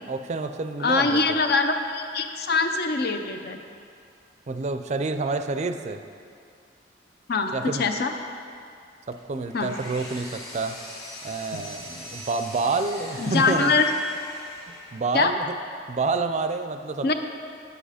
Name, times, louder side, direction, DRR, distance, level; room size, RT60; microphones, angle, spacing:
voice 1, 0.1-1.4 4.5-6.0 7.5-7.9 9.1-10.8 11.2-13.8 14.9-15.5 15.9-17.1, right 3 dB, 40° right, 9 dB, 0.4 m, -28 dB
voice 2, 0.8-3.6 7.3-7.5 7.8-8.1 9.5-9.7 11.5-11.6 13.2-13.8 15.1-15.3 17.0-17.1, left 4 dB, 55° left, 6 dB, 0.6 m, -23 dB
Power tool, 9.1-15.2, left 1 dB, 20° left, 1.9 m, -41 dB
9.9 x 7.9 x 4.9 m, 2.4 s
head